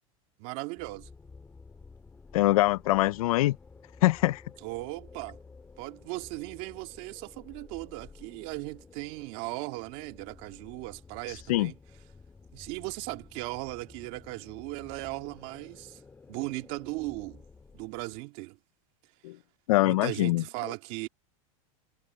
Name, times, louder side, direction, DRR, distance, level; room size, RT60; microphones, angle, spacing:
voice 1, 0.4-1.1 4.6-5.4 5.8-11.8 12.5-16.0 16.3-17.4 17.7-18.6 19.8-21.1, right 23 dB, 45° right, 2.1 m, -37 dB
sound 1, 0.8-18.2, left 4 dB, 10° left, 1.8 m, -53 dB
voice 2, 2.3-3.6 4.0-4.4 11.5-11.7 19.2-19.4 19.7-20.4, left 17 dB, 80° left, 0.5 m, -23 dB
supercardioid pair, 160°, 18 cm